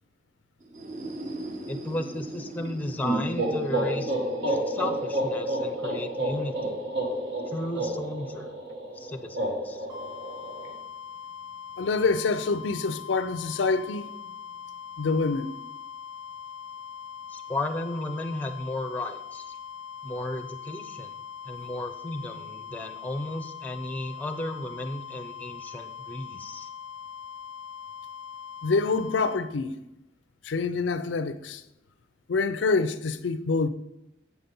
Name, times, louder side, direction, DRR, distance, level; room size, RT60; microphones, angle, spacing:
sound 1, 0.6-8.2, right 1 dB, 40° right, 1.0 m, -42 dB
voice 1, 1.7-4.1 4.5-6.8 7.5-8.5 8.9-9.4 9.6-9.9 17.3-19.5 20.0-21.1 21.4-26.7, left 1 dB, 10° left, 0.6 m, -34 dB
sound 2, 3.0-10.7, right 1 dB, 75° right, 1.8 m, -30 dB
sound 3, 9.9-29.4, left 8 dB, 25° right, 2.7 m, -41 dB
voice 2, 11.8-14.1 15.0-15.5 28.6-29.8 30.4-31.6 32.3-33.7, left 4 dB, 85° left, 0.5 m, -26 dB
8.2 x 5.7 x 5.4 m
head